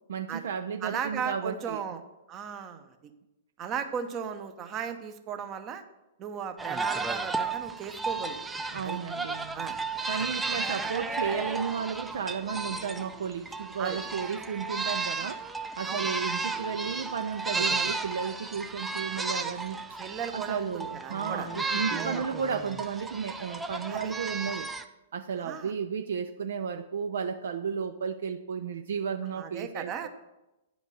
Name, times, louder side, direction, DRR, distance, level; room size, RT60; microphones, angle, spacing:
voice 1, 0.1-1.8 8.7-9.7 10.1-20.0 20.3-24.7 25.1-30.1, right 6 dB, 60° right, 8 dB, 0.4 m, -33 dB
voice 2, 0.8-2.0 2.3-2.9 3.6-5.8 6.2-8.4 8.8-9.0 9.5-9.8 10.2-10.3 10.7-10.9 13.8-14.0 15.8-16.1 20.0-21.5 21.9-22.2 23.9-24.1 25.4-25.7 29.4-30.1, right 7 dB, 30° right, 8 dB, 0.9 m, -36 dB
sound 1, 6.6-24.8, right 3 dB, 10° right, 0.5 m, -34 dB
9.6 x 5.2 x 6.4 m, 0.97 s
figure-of-eight pair, 110°, 0 cm